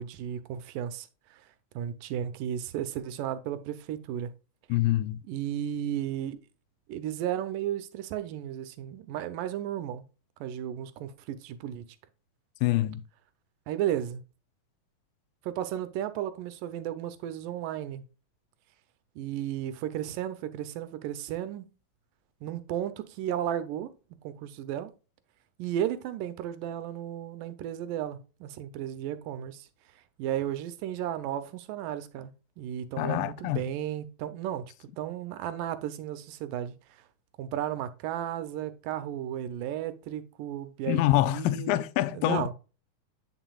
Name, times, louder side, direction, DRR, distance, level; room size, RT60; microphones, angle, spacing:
voice 1, 0.0-1.5 1.8-4.3 5.3-6.4 6.9-10.0 10.4-11.9 13.7-14.2 15.4-18.1 19.2-21.7 22.4-23.9 24.2-24.9 25.6-29.7 30.2-32.3 32.6-36.7 37.4-41.8 42.1-42.5, right 11 dB, 80° right, 2.3 m, -34 dB
voice 2, 4.7-5.2 12.6-13.0 33.0-33.7 40.9-42.4, left 15 dB, 90° left, 2.3 m, -26 dB
8.7 x 6.0 x 2.3 m
omnidirectional pair, 4.0 m